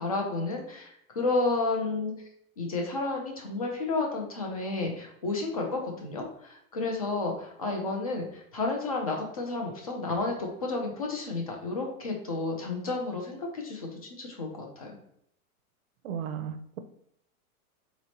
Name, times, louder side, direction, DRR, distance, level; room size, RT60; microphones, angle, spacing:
voice 1, 0.0-2.1 2.6-15.0, left 3 dB, 30° left, 1 dB, 0.4 m, -31 dB
voice 2, 16.0-16.8, right 8 dB, 65° right, 10 dB, 0.7 m, -35 dB
4.1 x 3.0 x 4.0 m, 0.72 s
supercardioid pair, 170°, 44 cm